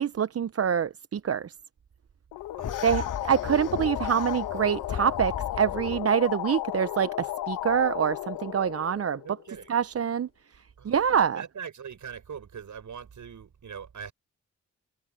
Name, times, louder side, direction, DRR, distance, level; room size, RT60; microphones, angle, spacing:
voice 1, 0.0-1.5 2.8-9.2 9.7-10.3 10.8-11.4, right 8 dB, 45° right, 0.8 m, -25 dB
sound 1, 2.3-9.7, left 15 dB, 90° left, 1.6 m, -34 dB
sound 2, 2.6-6.0, left 8 dB, 65° left, 3.6 m, -37 dB
voice 2, 2.6-3.1 9.2-9.7 10.8-11.0 11.3-14.1, right 7 dB, 60° right, 6.0 m, -42 dB
supercardioid pair, 45°, 33 cm